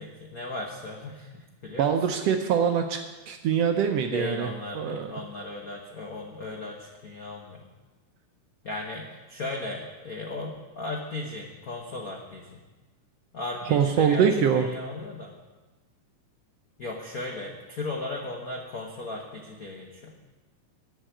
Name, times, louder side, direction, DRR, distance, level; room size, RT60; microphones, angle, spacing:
voice 1, 0.0-1.9 4.1-7.6 8.6-12.6 13.3-14.3 14.5-15.3 16.8-20.1, left 2 dB, 75° left, 0 dB, 0.8 m, -36 dB
voice 2, 1.8-5.1 13.7-14.7, right 7 dB, 75° right, 5 dB, 1.5 m, -24 dB
11.0 x 6.4 x 8.9 m, 1.2 s
omnidirectional pair, 3.4 m